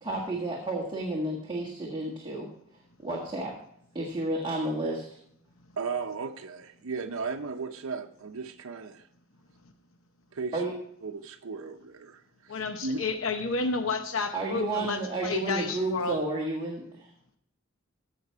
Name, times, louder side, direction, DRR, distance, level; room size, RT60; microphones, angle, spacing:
voice 1, 0.0-2.5 3.0-3.5 3.9-5.0 10.5-10.7 14.3-17.1, right 2 dB, 25° right, -3 dB, 1.7 m, -31 dB
voice 2, 5.8-9.0 10.3-10.6 11.0-12.6 12.8-13.1, right 4 dB, 90° right, 4 dB, 0.7 m, -35 dB
voice 3, 12.5-16.2, left 3 dB, 75° left, 7 dB, 0.8 m, -31 dB
15.0 x 5.9 x 4.6 m, 0.70 s
head